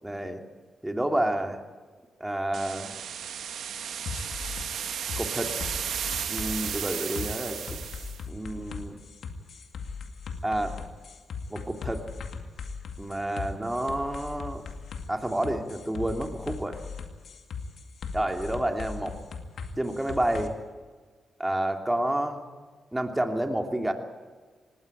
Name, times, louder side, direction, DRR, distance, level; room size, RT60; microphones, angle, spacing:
voice 1, 0.0-0.4 0.8-1.6 2.2-2.9 5.2-5.5 6.3-7.8 8.3-9.0 10.4-10.8 11.5-12.0 13.0-14.6 15.1-16.8 18.1-19.2 19.8-20.5 21.4-22.4 22.9-23.9, right 1 dB, 10° right, 4 dB, 2.8 m, -29 dB
sound 1, 2.5-8.2, right 8 dB, 80° right, 1.2 m, -34 dB
sound 2, 4.1-20.5, left 5 dB, 75° left, 2.1 m, -38 dB
19.0 x 17.5 x 9.1 m, 1.5 s
cardioid pair, 70°, 0 cm